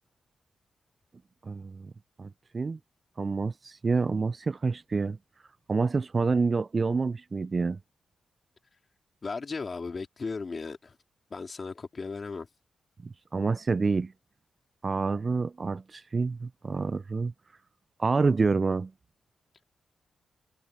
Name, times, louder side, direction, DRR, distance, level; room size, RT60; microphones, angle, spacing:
voice 1, 1.5-1.9 2.2-2.8 3.2-5.2 5.7-7.8 13.3-14.1 14.8-17.3 18.0-18.9, right 4 dB, 45° right, 0.4 m, -27 dB
voice 2, 9.2-11.0 11.3-12.5, left 4 dB, 45° left, 3.8 m, -36 dB
supercardioid pair, 45°, 0 cm